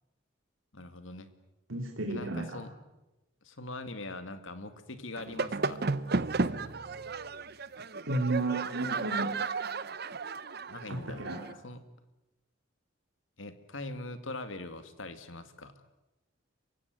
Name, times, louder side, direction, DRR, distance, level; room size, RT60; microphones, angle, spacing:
voice 1, 0.7-1.3 2.1-2.7 3.4-5.8 10.7-11.3 11.6-11.8 13.4-15.7, left 2 dB, 75° left, 10 dB, 2.1 m, -42 dB
voice 2, 1.7-2.6 8.1-9.5 10.9-11.4, right 2 dB, 85° right, 2 dB, 2.8 m, -33 dB
sound 1, 5.2-11.5, right 3 dB, 50° right, 0.8 m, -34 dB
30.0 x 16.0 x 9.3 m, 0.99 s
head